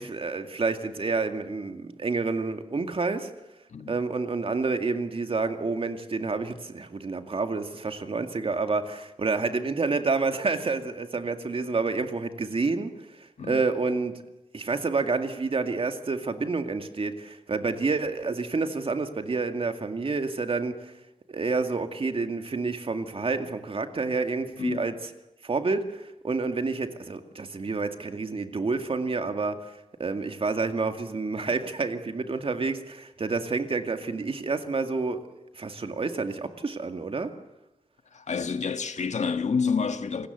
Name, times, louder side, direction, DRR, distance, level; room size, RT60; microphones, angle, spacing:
voice 1, 0.0-3.3 3.9-14.1 14.5-20.9 21.3-25.0 25.4-35.3 35.5-37.3, right 4 dB, 50° right, 2.2 m, -29 dB
voice 2, 24.6-24.9 38.1-40.3, left 5 dB, 80° left, 1.7 m, -28 dB
28.0 x 20.0 x 8.1 m
wide cardioid pair, 125°, 12 cm